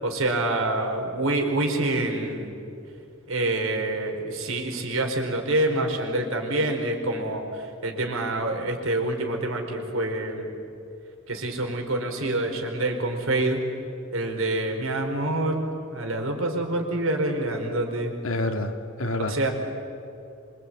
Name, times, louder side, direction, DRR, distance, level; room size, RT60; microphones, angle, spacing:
voice 1, 0.0-2.5 3.3-10.5 11.3-13.6 14.1-15.6 15.9-18.1 19.3-19.5, right 2 dB, 80° right, 3 dB, 4.9 m, -26 dB
voice 2, 18.2-19.4, left 2 dB, 75° left, 5 dB, 2.5 m, -28 dB
26.0 x 24.5 x 9.2 m, 2.7 s
head